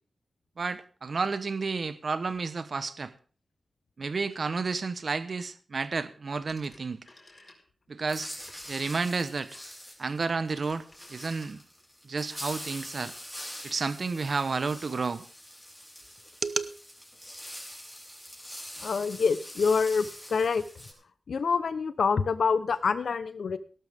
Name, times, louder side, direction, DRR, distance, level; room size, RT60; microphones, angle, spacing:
voice 1, 0.6-3.1 4.0-7.0 7.9-8.3 8.7-9.5 10.0-11.6 12.0-13.1 13.6-15.3 16.4-16.7, right 4 dB, 60° right, 13 dB, 1.1 m, -31 dB
Telephone, 6.4-7.9 8.3-11.8, left 2 dB, 35° left, 4.7 m, -56 dB
sound 1, 8.1-20.9, equal, 5° left, 5.7 m, -44 dB
voice 2, 18.8-20.6 21.3-23.6, left 5 dB, 90° left, 14 dB, 1.0 m, -26 dB
17.5 x 12.5 x 3.6 m, 0.41 s
wide cardioid pair, 90°, 0 cm